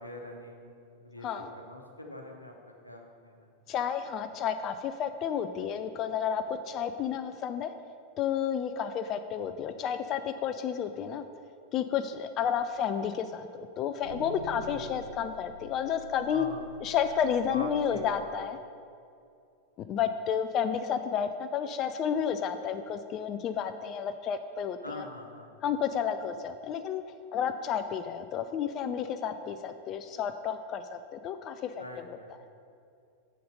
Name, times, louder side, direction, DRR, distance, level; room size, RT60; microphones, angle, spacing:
voice 1, 0.0-2.5 2.8-3.5 14.7-14.9 16.3-16.6 17.5-18.3 24.8-25.5 31.8-32.3, left 1 dB, 85° left, 2 dB, 0.9 m, -43 dB
voice 2, 3.7-7.7 8.2-11.3 11.7-13.5 13.8-16.5 16.8-18.6 19.9-25.1 25.6-27.0 27.3-32.2, left 8 dB, 35° left, 9 dB, 0.3 m, -31 dB
sound 1, 12.4-12.5 14.0-18.1, right 1 dB, 60° right, 0.9 m, -47 dB
6.7 x 6.5 x 5.2 m, 2.5 s
figure-of-eight pair, 90°, 0 cm